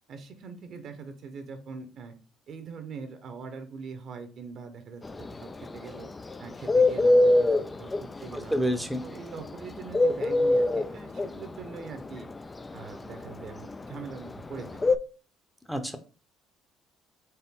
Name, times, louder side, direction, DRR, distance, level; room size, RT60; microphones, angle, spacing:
voice 1, 0.1-2.1 2.5-6.1 6.4-8.6 9.0-12.3 12.7-14.8, right 5 dB, 60° right, 8 dB, 0.9 m, -42 dB
Bird, 5.0-15.0, left 2 dB, 25° left, 0.4 m, -23 dB
voice 2, 8.3-9.0 15.7-16.0, equal, ahead, 6 dB, 0.8 m, -28 dB
4.5 x 3.2 x 3.7 m, 0.35 s
supercardioid pair, 70°, 0 cm